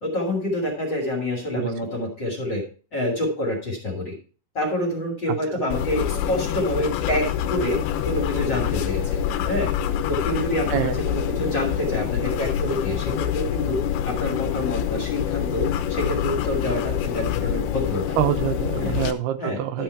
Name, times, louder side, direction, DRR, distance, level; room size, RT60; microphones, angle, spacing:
voice 1, 0.0-2.6 2.9-4.1 4.5-9.7 10.1-18.2 18.8-19.0 19.4-19.8, left 1 dB, 35° left, 0 dB, 2.3 m, -27 dB
sound 1, 5.7-19.1, left 9 dB, 75° left, 2.6 m, -26 dB
voice 2, 18.2-19.8, right 12 dB, 80° right, 9 dB, 2.6 m, -25 dB
12.0 x 5.5 x 4.6 m, 0.38 s
omnidirectional pair, 4.7 m